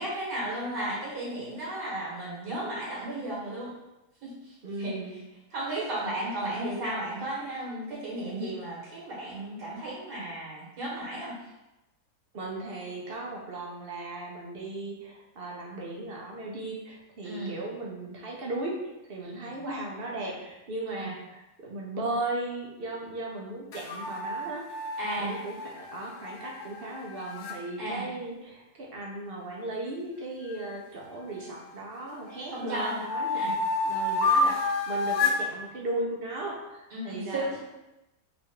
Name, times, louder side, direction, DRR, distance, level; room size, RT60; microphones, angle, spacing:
voice 1, 0.0-3.7 4.2-4.9 5.5-11.3 17.2-17.6 19.2-19.5 21.0-21.1 25.0-25.4 27.8-28.1 32.5-33.0 33.3-33.5 36.9-37.6, right 1 dB, 75° right, -8 dB, 2.2 m, -34 dB
voice 2, 4.6-5.2 12.3-24.7 25.2-33.4 33.8-37.5, right 2 dB, 50° right, -2 dB, 0.7 m, -36 dB
sound 1, 23.7-27.6 30.5-31.8 32.3-35.5, left 3 dB, 75° left, 1.1 m, -30 dB
4.1 x 2.5 x 4.5 m, 0.97 s
omnidirectional pair, 1.7 m